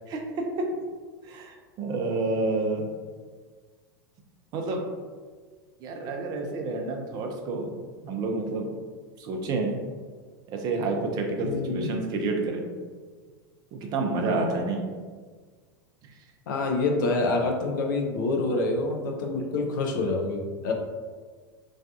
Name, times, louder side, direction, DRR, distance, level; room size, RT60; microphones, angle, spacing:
voice 1, 1.2-2.9 4.5-4.8 5.8-7.7 8.0-8.7 9.2-9.9 10.5-12.7 13.7-14.9, right 3 dB, 35° right, 2 dB, 0.4 m, -29 dB
voice 2, 11.4-11.9 16.5-20.7, left 3 dB, 55° left, 2 dB, 0.4 m, -27 dB
2.4 x 2.2 x 2.4 m, 1.5 s
figure-of-eight pair, 85°, 12 cm